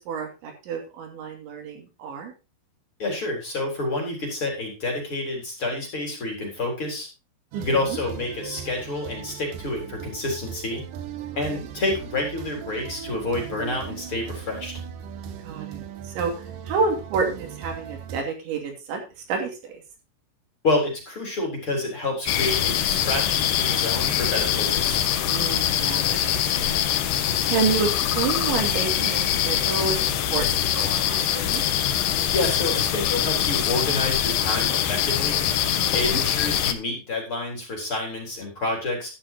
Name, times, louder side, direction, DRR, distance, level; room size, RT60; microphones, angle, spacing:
voice 1, 0.0-2.3 7.5-8.0 11.3-11.6 15.4-15.8 16.1-16.3 16.7-19.8 25.3-26.7 27.4-31.6 35.7-36.2, right 5 dB, 70° right, 3 dB, 4.7 m, -29 dB
voice 2, 3.0-7.1 7.6-10.8 11.4-14.7 20.6-25.0 32.3-35.4 35.9-39.1, left 2 dB, 30° left, 1 dB, 4.4 m, -28 dB
sound 1, 7.5-18.2, right 8 dB, 90° right, 1.8 m, -38 dB
sound 2, 22.3-36.7, left 10 dB, 80° left, 2.0 m, -23 dB
12.5 x 12.0 x 2.9 m, 0.29 s
omnidirectional pair, 5.6 m